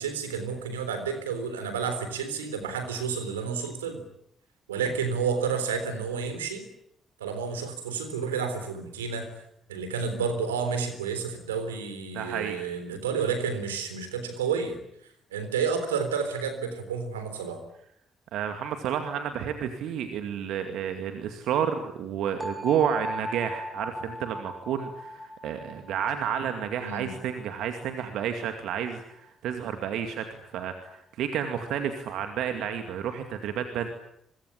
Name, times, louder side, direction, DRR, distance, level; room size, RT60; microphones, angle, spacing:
voice 1, 0.0-4.0 4.7-6.6 7.2-9.3 9.7-14.8 15.3-17.6 26.8-27.1, right 6 dB, 85° right, 9 dB, 3.7 m, -30 dB
voice 2, 12.1-12.6 18.3-33.9, right 8 dB, 65° right, 7 dB, 2.3 m, -30 dB
sound 1, 22.4-28.2, equal, 10° right, 6.6 m, -39 dB
24.5 x 23.0 x 9.8 m, 0.75 s
figure-of-eight pair, 45°, 0 cm